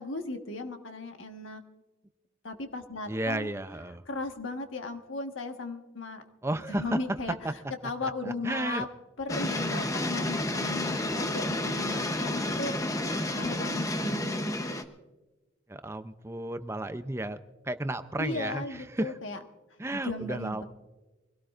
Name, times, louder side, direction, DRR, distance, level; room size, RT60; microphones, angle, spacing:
voice 1, 0.0-1.6 2.4-3.5 4.1-6.2 6.7-7.4 7.8-8.9 9.2-12.8 13.4-14.5 18.2-19.4 19.9-20.6, left 2 dB, 75° left, 5 dB, 1.5 m, -36 dB
voice 2, 3.1-4.0 6.4-7.0 7.4-7.5 8.0-8.9 10.9-11.2 15.7-17.4 17.6-19.2 19.8-20.6, right 1 dB, 15° right, 10 dB, 0.5 m, -33 dB
sound 1, 9.3-14.8, left 1 dB, 15° left, 0.8 m, -30 dB
24.0 x 17.5 x 2.5 m, 1.1 s
head